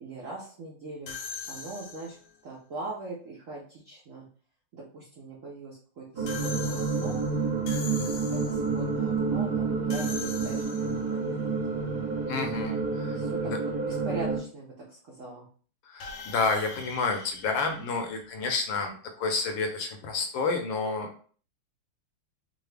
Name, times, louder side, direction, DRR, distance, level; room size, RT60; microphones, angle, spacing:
voice 1, 0.0-1.1 1.5-2.2 2.4-4.3 4.7-7.2 7.9-11.6 13.1-13.5 13.8-15.5, right 3 dB, 70° right, -4 dB, 0.7 m, -41 dB
sound 1, 1.1-2.3 6.3-8.8 9.9-11.2 16.0-18.5, left 5 dB, 90° left, 1.6 m, -41 dB
sound 2, 6.2-14.4, right 4 dB, 55° right, 1.6 m, -29 dB
voice 2, 12.3-13.6 15.9-21.1, left 4 dB, 75° left, 4 dB, 1.3 m, -30 dB
3.8 x 2.0 x 3.3 m, 0.44 s
omnidirectional pair, 2.3 m